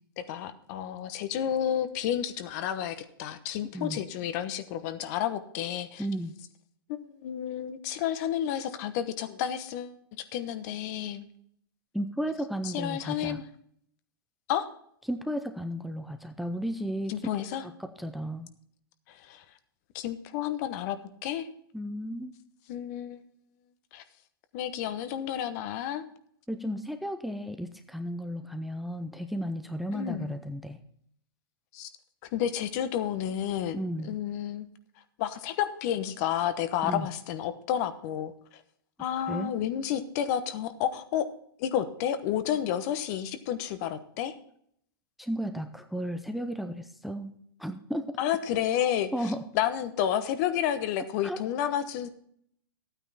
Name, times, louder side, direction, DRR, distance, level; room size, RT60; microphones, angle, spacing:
voice 1, 0.2-6.1 6.9-11.2 12.6-13.4 14.5-14.7 17.1-17.6 19.1-19.4 19.9-21.5 22.7-23.2 23.9-24.0 24.5-26.0 29.9-30.3 31.7-31.9 32.3-34.7 35.2-38.6 39.0-41.3 41.6-44.3 48.2-49.1 49.5-52.1, left 10 dB, 45° left, 11 dB, 1.0 m, -31 dB
voice 2, 6.0-6.3 11.9-13.4 15.1-17.1 17.6-18.5 21.7-22.3 26.5-30.8 33.7-34.1 36.8-37.1 39.3-39.5 45.2-47.3 47.6-48.2 49.1-49.4 51.2-51.4, equal, ahead, 7 dB, 0.6 m, -34 dB
13.0 x 9.1 x 4.2 m, 0.67 s
hypercardioid pair, 120°, 12 cm